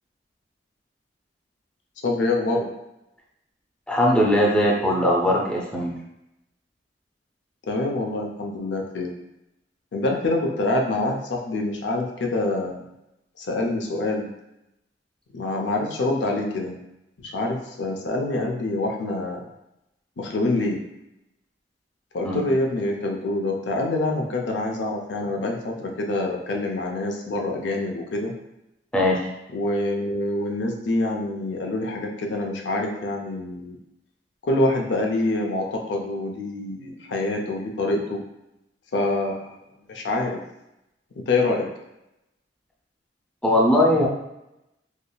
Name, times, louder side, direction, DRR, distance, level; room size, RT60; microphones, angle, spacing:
voice 1, 2.0-2.7 7.7-9.1 9.9-12.8 13.4-14.3 15.3-16.8 17.2-19.4 20.2-20.8 22.1-28.3 29.5-33.8 34.5-38.2 38.9-39.5 39.9-40.4 41.2-41.7, left 2 dB, 80° left, 1 dB, 0.5 m, -26 dB
voice 2, 3.9-5.9 22.2-22.4 28.9-29.2 43.4-44.1, left 1 dB, 5° left, -3 dB, 0.4 m, -20 dB
3.5 x 2.4 x 2.2 m, 0.88 s
head